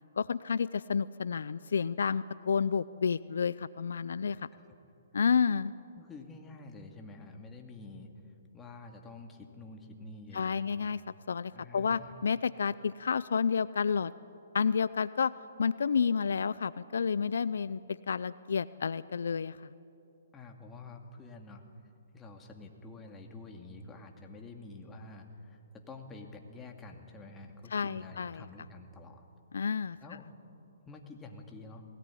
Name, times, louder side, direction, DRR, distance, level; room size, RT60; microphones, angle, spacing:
voice 1, 0.2-4.5 5.1-5.7 10.3-11.0 11.3-14.1 14.5-15.3 15.6-19.6 27.7-28.4 29.5-30.0, left 6 dB, 75° left, 17 dB, 0.5 m, -30 dB
voice 2, 4.2-4.6 5.9-8.1 8.5-10.6 11.5-12.1 20.3-21.6 22.1-29.2 30.0-30.2 30.9-31.8, left 3 dB, 15° left, 2 dB, 2.4 m, -48 dB
21.0 x 18.0 x 10.0 m, 2.7 s
hypercardioid pair, 140°, 0 cm